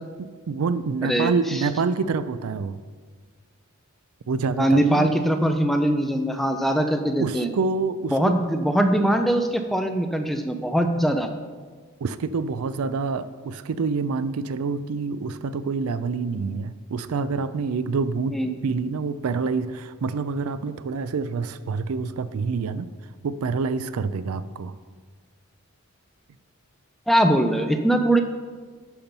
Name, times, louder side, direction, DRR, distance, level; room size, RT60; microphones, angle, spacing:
voice 1, 0.2-2.8 4.3-5.1 7.2-8.3 12.0-22.9 23.2-24.7, right 4 dB, 75° right, 14 dB, 0.4 m, -27 dB
voice 2, 1.0-1.7 4.6-7.5 8.1-11.3 18.3-18.5 27.1-28.2, right 1 dB, ahead, 5 dB, 0.5 m, -22 dB
10.5 x 4.4 x 5.4 m, 1.5 s
head